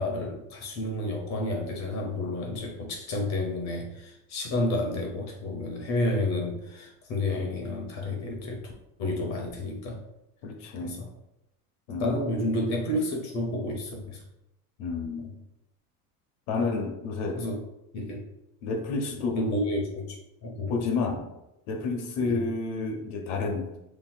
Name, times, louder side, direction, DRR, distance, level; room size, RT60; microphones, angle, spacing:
voice 1, 0.0-8.7 9.0-10.0 10.8-11.1 11.9-14.2 15.2-15.3 16.5-16.6 17.4-17.6 17.9-18.3 19.1-20.8 22.2-22.4, left 1 dB, 40° left, 1 dB, 0.8 m, -30 dB
voice 2, 10.4-11.0 11.9-12.2 14.8-15.3 16.5-17.4 18.6-19.4 20.7-21.2 21.7-23.7, left 4 dB, 70° left, 3 dB, 0.9 m, -30 dB
5.5 x 2.9 x 2.2 m, 0.89 s
supercardioid pair, 130°, 44 cm